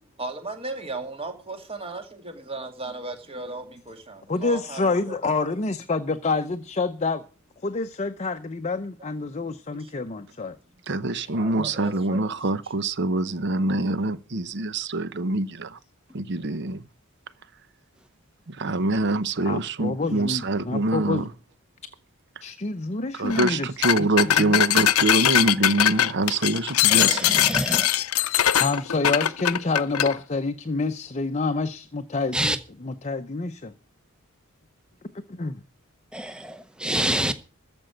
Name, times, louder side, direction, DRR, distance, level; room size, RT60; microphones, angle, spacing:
voice 1, 0.2-5.2 9.7-9.9 11.3-12.2, right 2 dB, 25° right, 2.2 m, -36 dB
voice 2, 4.3-7.2 7.6-10.6 19.5-21.3 22.4-23.7 24.0-24.1 24.3-24.6 28.6-33.7 35.3-35.6, left 3 dB, 30° left, 0.6 m, -27 dB
voice 3, 10.9-15.8 16.1-16.9 18.5-21.3 23.1-27.6, right 2 dB, 55° right, 0.8 m, -25 dB
sound 1, 23.3-23.5 23.8-30.1, left 11 dB, 85° left, 0.6 m, -21 dB
voice 4, 26.9-27.9 32.3-32.6 36.1-37.3, right 1 dB, 5° right, 0.8 m, -27 dB
14.5 x 5.4 x 9.0 m
head